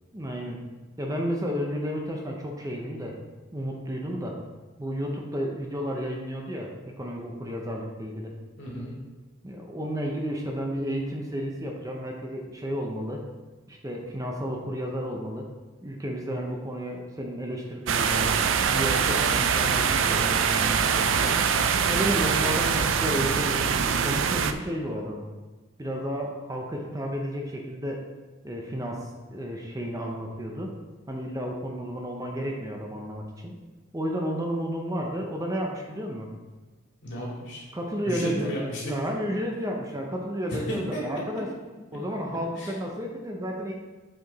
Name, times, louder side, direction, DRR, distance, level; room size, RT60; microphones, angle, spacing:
voice 1, 0.1-0.6 1.0-3.2 3.5-4.4 4.8-6.7 7.0-8.3 9.4-13.2 13.7-15.4 15.8-18.3 18.7-21.4 21.9-25.2 25.8-28.0 28.4-30.7 31.1-33.5 33.9-36.3 37.7-38.5 38.9-41.5 41.9-43.7, equal, 15° right, 0 dB, 0.6 m, -32 dB
voice 2, 8.6-8.9 37.0-37.7 38.0-38.9 40.5-41.0 42.6-42.7, equal, 60° left, -4 dB, 2.2 m, -33 dB
sound 1, 17.9-24.5, right 6 dB, 65° right, 0.4 m, -23 dB
7.6 x 4.7 x 4.0 m, 1.3 s
head